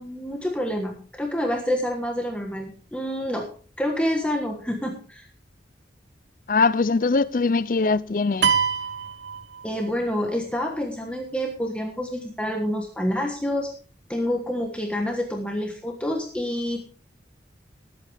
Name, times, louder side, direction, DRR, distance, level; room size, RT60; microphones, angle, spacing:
voice 1, 0.0-3.5 3.8-5.3 9.6-13.7 14.1-16.9, equal, 5° left, 1.3 m, -27 dB
voice 2, 6.5-8.5, left 4 dB, 50° left, 0.5 m, -22 dB
sound 1, 8.4-10.1, right 7 dB, 85° right, 1.1 m, -25 dB
20.0 x 8.5 x 3.5 m
head